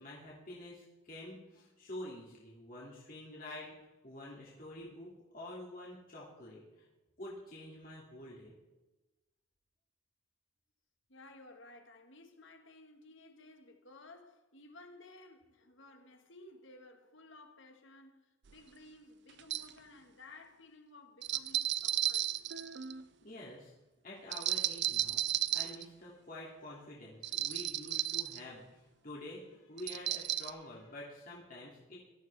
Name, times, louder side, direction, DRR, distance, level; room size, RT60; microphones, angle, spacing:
voice 1, 0.0-3.7 4.0-6.9 7.2-8.5 23.2-23.7 24.0-25.2 25.5-32.0, left 1 dB, 40° left, 2.9 m, -48 dB
voice 2, 11.1-22.3, left 2 dB, 60° left, 1.8 m, -56 dB
sound 1, 18.5-18.6 19.4-19.7 21.2-23.0 24.3-25.8 27.2-28.4 29.8-30.5, right 13 dB, 55° right, 0.6 m, -34 dB
17.0 x 13.0 x 3.6 m
head